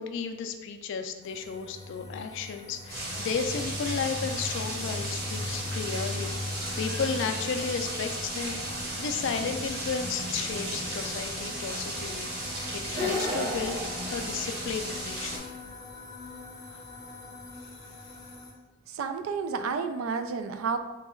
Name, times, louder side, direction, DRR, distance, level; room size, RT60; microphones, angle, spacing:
voice 1, 0.0-8.6 9.0-13.8 14.1-15.5 16.7-16.8, left 6 dB, 65° left, 7 dB, 0.3 m, -33 dB
sound 1, 1.2-18.5, left 2 dB, 15° left, 0.6 m, -41 dB
sound 2, 2.9-15.4, right 1 dB, 55° right, 1.0 m, -35 dB
sound 3, 12.8-14.9, left 1 dB, 30° right, 0.8 m, -33 dB
voice 2, 18.9-20.8, right 5 dB, 90° right, 8 dB, 0.3 m, -31 dB
3.1 x 2.2 x 4.3 m, 1.1 s
head